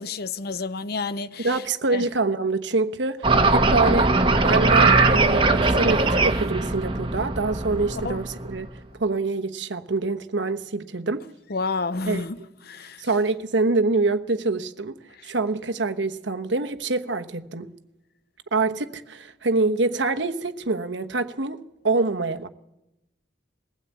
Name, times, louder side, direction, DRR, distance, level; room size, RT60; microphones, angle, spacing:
voice 1, 0.0-1.6 1.9-2.0 8.0-8.2 11.5-12.4 12.7-13.1 15.2-15.3, left 4 dB, 55° left, 0.7 m, -30 dB
voice 2, 1.4-4.1 4.4-8.7 9.0-11.2 12.1-12.4 13.0-14.9 15.2-17.7 18.5-21.6 21.8-22.5, right 3 dB, 75° right, 1.1 m, -25 dB
sound 1, 3.2-8.6, right 3 dB, 30° right, 1.2 m, -20 dB
21.5 x 16.0 x 8.4 m
head